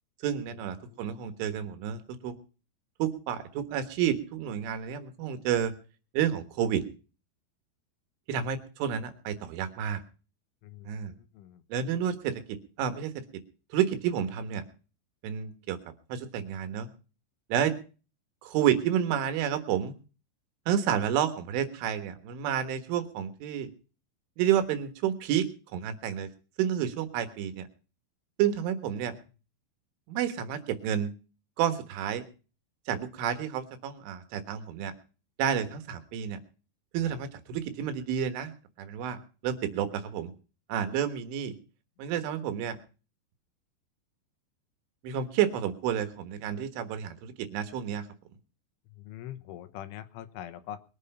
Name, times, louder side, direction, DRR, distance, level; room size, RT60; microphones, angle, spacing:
voice 1, 0.2-2.3 3.0-5.7 6.1-6.8 8.3-10.0 10.9-11.1 11.7-13.4 13.7-14.7 15.2-15.8 16.1-16.9 17.5-17.7 18.4-19.9 20.7-23.7 24.4-25.5 25.7-26.3 26.6-27.7 28.4-29.2 30.1-31.1 31.6-32.3 32.9-34.9 35.4-36.4 36.9-38.5 38.8-40.3 40.7-41.6 42.0-42.8 45.0-48.1, right 9 dB, 85° right, 9 dB, 3.9 m, -30 dB
voice 2, 10.6-11.6 48.9-50.8, left 11 dB, 85° left, 11 dB, 3.5 m, -44 dB
21.5 x 8.3 x 5.5 m, 0.36 s
omnidirectional pair, 5.5 m